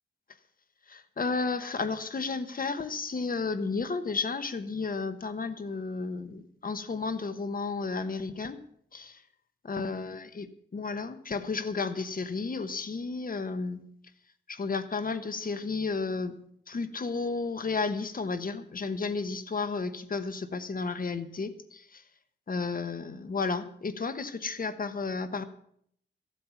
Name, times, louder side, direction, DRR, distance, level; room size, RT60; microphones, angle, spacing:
voice 1, 0.9-8.6 8.9-9.2 9.6-10.5 10.7-13.8 14.5-16.4 16.7-22.0 22.5-25.4, left 4 dB, 50° left, 11 dB, 1.1 m, -32 dB
14.5 x 8.5 x 7.1 m, 0.67 s
wide cardioid pair, 95°, 19 cm